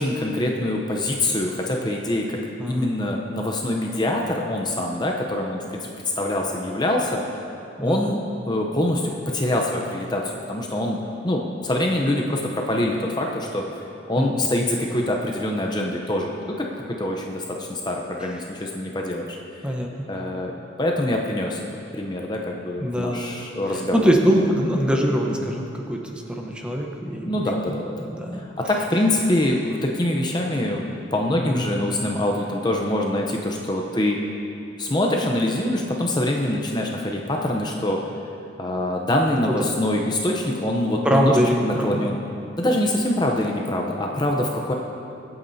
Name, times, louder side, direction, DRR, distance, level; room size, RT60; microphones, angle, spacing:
voice 1, 0.0-2.4 2.7-7.2 7.8-8.2 8.5-11.0 11.2-19.6 20.1-20.5 20.8-21.6 21.9-24.1 27.3-27.8 28.3-34.2 34.8-38.0 38.6-42.2 42.6-44.7, left 1 dB, 20° left, 0 dB, 0.7 m, -24 dB
voice 2, 2.6-3.0 7.8-8.1 14.2-14.4 19.6-19.9 22.8-23.4 23.7-27.3 27.7-28.4 31.3-31.8 41.0-42.1, equal, 5° right, 0 dB, 0.9 m, -23 dB
23.5 x 8.7 x 2.8 m, 2.7 s
head